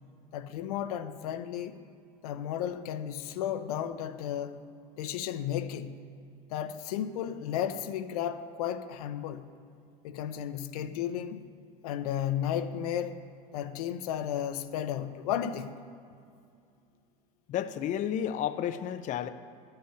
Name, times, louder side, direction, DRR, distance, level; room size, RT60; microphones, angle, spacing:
voice 1, 0.3-1.8 2.2-4.6 5.0-6.0 6.5-9.5 10.0-11.5 11.8-13.2 13.5-15.8, left 10 dB, 85° left, 0.7 m, -33 dB
voice 2, 17.5-19.3, left 10 dB, 40° left, 0.5 m, -31 dB
11.5 x 5.6 x 9.0 m
supercardioid pair, 110°, 19 cm